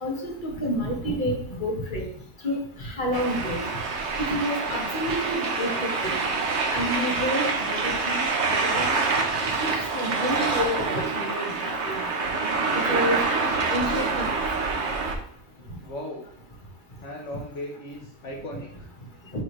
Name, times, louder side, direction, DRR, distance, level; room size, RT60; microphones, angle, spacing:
voice 1, 0.0-2.1 2.4-3.7 4.2-6.2 6.7-9.0 9.6-12.1 12.9-14.4, equal, 40° left, -1 dB, 1.8 m, -29 dB
sound 1, 3.1-15.1, right 4 dB, 65° right, 1.3 m, -26 dB
voice 2, 15.6-16.3 17.0-18.9, left 1 dB, 70° left, -1 dB, 1.5 m, -37 dB
10.5 x 3.8 x 3.3 m, 0.63 s
omnidirectional pair, 1.3 m